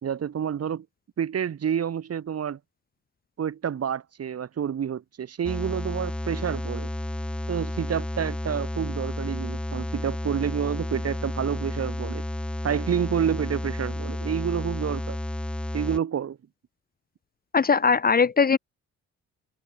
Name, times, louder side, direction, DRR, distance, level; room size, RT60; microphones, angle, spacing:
voice 1, 0.0-0.9 1.2-2.6 3.4-6.9 7.5-12.2 12.6-15.2 15.7-16.4, right 8 dB, 55° right, 3.7 m, -29 dB
sound 1, 5.4-16.0, left 1 dB, 5° left, 0.5 m, -31 dB
voice 2, 17.5-18.6, left 5 dB, 30° left, 0.9 m, -20 dB
cardioid pair, 90°, 30 cm